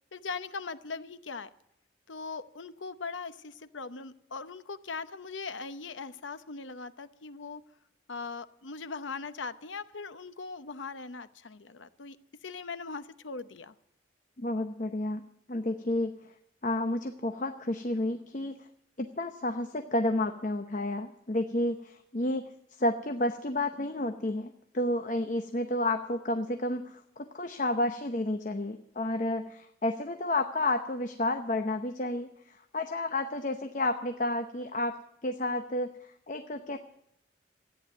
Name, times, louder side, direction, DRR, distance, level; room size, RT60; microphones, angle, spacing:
voice 1, 0.1-1.5 2.1-7.6 8.1-12.2 12.4-13.7, left 4 dB, 90° left, 12 dB, 0.8 m, -40 dB
voice 2, 14.4-15.2 15.5-16.2 16.6-18.7 19.0-34.9 35.2-36.8, left 1 dB, 45° left, 6 dB, 0.8 m, -31 dB
14.0 x 9.7 x 9.4 m, 0.77 s
head